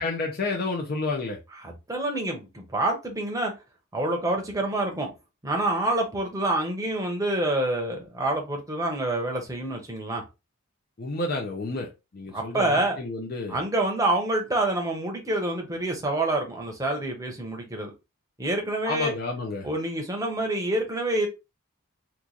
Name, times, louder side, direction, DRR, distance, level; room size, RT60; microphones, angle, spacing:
voice 1, 0.0-1.4 11.0-11.9 12.1-13.6 18.8-19.7, left 3 dB, 45° left, 0.5 m, -30 dB
voice 2, 1.6-3.5 3.9-5.1 5.4-10.2 12.3-13.0 13.5-17.9 18.4-19.1 19.6-21.3, right 1 dB, 15° right, 0.8 m, -27 dB
3.0 x 2.4 x 3.8 m
head